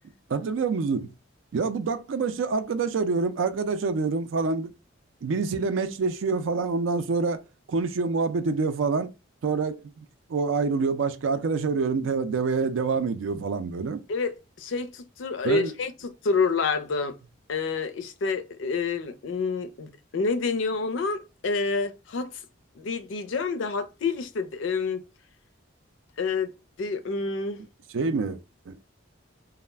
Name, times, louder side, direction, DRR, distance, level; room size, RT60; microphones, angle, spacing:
voice 1, 0.3-1.1 1.5-4.7 5.2-7.4 7.7-9.1 9.4-10.0 10.3-14.0 15.4-15.7 27.9-28.4 28.7-28.8, right 4 dB, 80° right, 0.4 m, -26 dB
voice 2, 14.1-17.2 17.5-22.4 22.8-25.0 26.2-26.5 26.8-27.6, left 4 dB, 80° left, 0.4 m, -28 dB
2.3 x 2.1 x 3.2 m
head